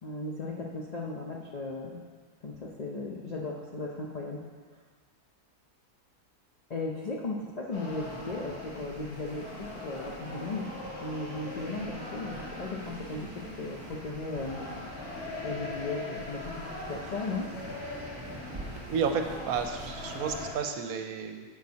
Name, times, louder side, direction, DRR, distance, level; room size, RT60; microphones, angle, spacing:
voice 1, 0.0-2.0 2.4-4.4 6.7-10.7 11.0-14.6 15.4-16.6 16.9-17.5, left 3 dB, 55° left, -2 dB, 0.4 m, -36 dB
sound 1, 7.7-20.5, left 2 dB, 70° left, 2.2 m, -41 dB
sound 2, 7.8-20.4, right 1 dB, 20° right, 0.7 m, -47 dB
voice 2, 18.9-21.4, right 6 dB, 70° right, 5 dB, 1.0 m, -31 dB
10.5 x 6.5 x 2.8 m, 1.5 s
omnidirectional pair, 1.6 m